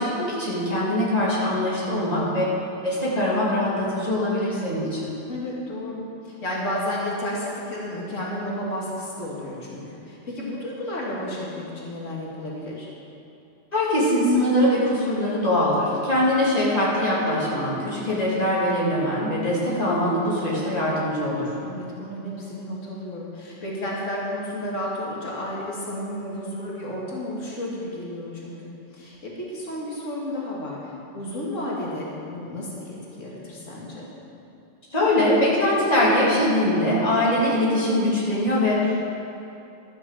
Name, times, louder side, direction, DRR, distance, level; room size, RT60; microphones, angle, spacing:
voice 1, 0.0-2.4 2.8-5.1 13.7-21.5 34.9-39.0, left 1 dB, 30° left, -7 dB, 2.9 m, -22 dB
voice 2, 1.9-2.5 5.3-12.9 21.6-28.5 28.9-34.1, left 1 dB, 90° left, -5 dB, 2.3 m, -32 dB
13.0 x 6.5 x 7.5 m, 2.8 s
omnidirectional pair, 1.3 m